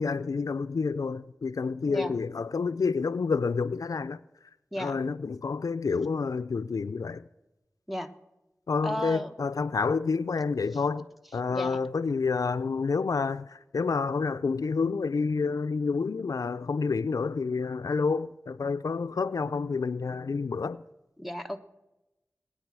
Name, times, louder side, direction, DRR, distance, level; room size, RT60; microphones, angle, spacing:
voice 1, 0.0-4.2 4.8-7.2 8.7-20.8, left 4 dB, 80° left, 0.4 m, -29 dB
voice 2, 1.9-2.2 4.7-5.0 7.9-8.1 8.8-9.3 11.5-11.8 21.2-21.6, equal, ahead, 1.1 m, -34 dB
20.0 x 9.5 x 6.2 m
wide cardioid pair, 70°, 6 cm